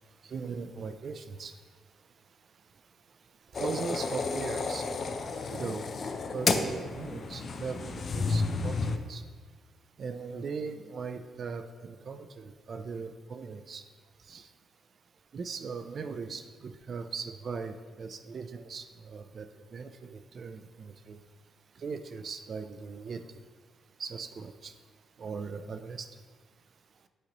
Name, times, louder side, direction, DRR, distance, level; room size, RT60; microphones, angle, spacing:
voice 1, 0.3-1.5 3.6-4.8 5.5-5.9 6.3-9.2 10.0-13.8 14.3-14.4 15.3-19.5 19.7-21.2 21.8-23.2 24.0-24.7 25.2-26.1, right 5 dB, 50° right, 9 dB, 0.4 m, -39 dB
sound 1, 3.5-9.0, left 4 dB, 50° left, 0.5 m, -31 dB
10.0 x 4.0 x 3.0 m, 1.5 s
cardioid pair, 90°, 0 cm